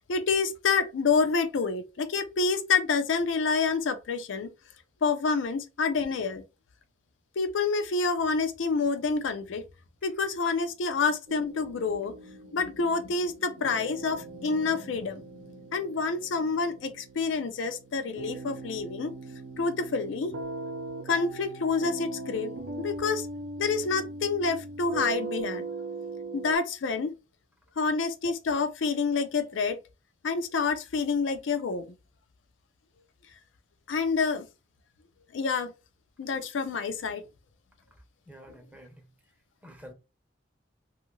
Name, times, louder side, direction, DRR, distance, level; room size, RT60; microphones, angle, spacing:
voice 1, 0.1-4.5 5.0-6.4 7.4-9.6 10.0-12.1 12.5-19.1 19.6-20.3 21.1-22.5 22.8-23.3 23.6-25.7 26.3-27.1 27.8-29.8 30.2-31.9 33.9-34.5 35.3-35.7 36.2-37.2, left 4 dB, 80° left, 0.5 m, -28 dB
sound 1, 11.3-26.6, right 2 dB, 70° right, 0.6 m, -40 dB
voice 2, 37.9-39.1 39.6-39.9, equal, 10° right, 0.6 m, -50 dB
2.6 x 2.4 x 3.0 m
head